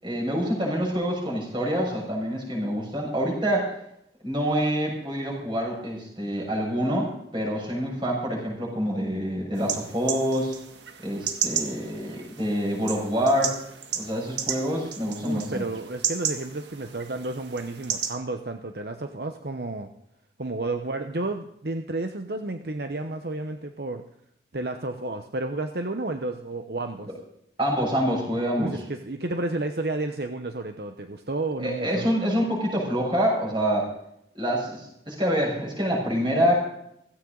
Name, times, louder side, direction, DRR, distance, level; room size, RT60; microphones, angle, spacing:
voice 1, 0.0-3.7 4.2-10.5 11.0-13.6 14.0-15.6 27.1-27.2 27.6-28.8 31.6-33.9 34.3-36.6, equal, 25° right, -3 dB, 6.5 m, -26 dB
sound 1, 9.6-18.1, right 8 dB, 85° right, 1.9 m, -33 dB
voice 2, 15.2-19.9 20.4-24.0 24.5-27.1 28.6-32.1, right 2 dB, 60° right, 6 dB, 0.9 m, -31 dB
16.5 x 16.0 x 4.0 m, 0.75 s
head